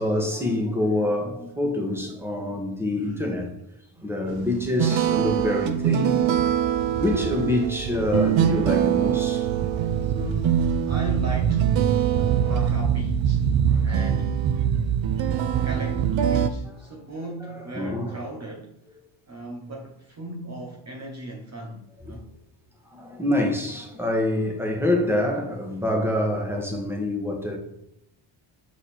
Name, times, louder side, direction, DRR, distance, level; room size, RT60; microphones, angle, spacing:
voice 1, 0.0-3.5 4.0-6.2 7.0-9.5 12.1-12.5 13.7-13.9 15.5-15.7 17.4-18.2 22.1-22.2 22.9-27.6, left 1 dB, 5° right, 1.7 m, -26 dB
voice 2, 3.0-3.5 3.9-4.1 10.1-11.8 12.3-14.5 15.6-18.7 19.3-22.3, right 1 dB, 30° right, 1.2 m, -37 dB
sound 1, 4.3-16.5, right 9 dB, 65° right, 0.7 m, -23 dB
7.3 x 4.0 x 4.4 m
cardioid pair, 95°, 49 cm